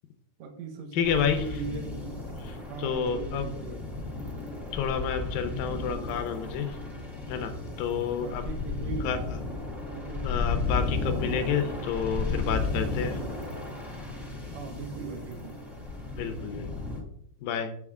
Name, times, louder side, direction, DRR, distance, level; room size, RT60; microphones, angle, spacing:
voice 1, 0.4-2.2 2.4-3.9 8.2-9.2 9.9-10.2 14.5-15.6, right 5 dB, 80° right, 4 dB, 1.5 m, -39 dB
voice 2, 0.9-1.6 2.4-3.8 4.7-6.8 7.3-8.5 9.0-9.4 10.2-13.2 16.1-16.7 17.4-17.7, left 7 dB, 80° left, 7 dB, 2.1 m, -30 dB
sound 1, 1.0-17.0, left 3 dB, ahead, 0.6 m, -34 dB
7.3 x 7.0 x 3.6 m, 0.70 s
omnidirectional pair, 4.5 m